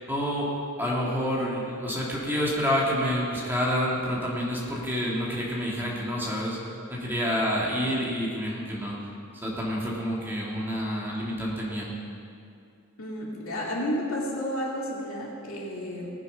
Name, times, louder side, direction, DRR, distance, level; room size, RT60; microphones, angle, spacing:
voice 1, 0.1-0.5 0.8-6.6 6.9-8.9 9.3-11.9, equal, 10° right, -4 dB, 2.2 m, -28 dB
voice 2, 13.0-16.1, equal, 65° left, -3 dB, 2.6 m, -31 dB
19.0 x 7.1 x 5.7 m, 2.5 s
head